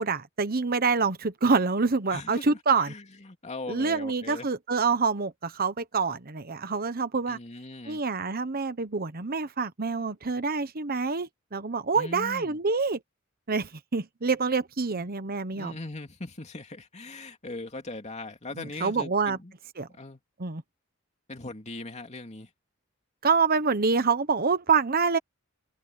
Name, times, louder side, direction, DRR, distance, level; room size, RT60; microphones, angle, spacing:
voice 1, 0.0-2.9 3.7-7.4 7.9-13.0 13.5-15.7 18.6-19.4 19.8-19.9 20.4-20.6 23.2-25.2, right 4 dB, 45° right, 1.1 m, -26 dB
voice 2, 2.1-4.5 7.3-8.0 11.9-12.6 15.5-19.5 19.9-20.2 21.3-22.5, left 2 dB, 35° left, 2.8 m, -40 dB
open air
head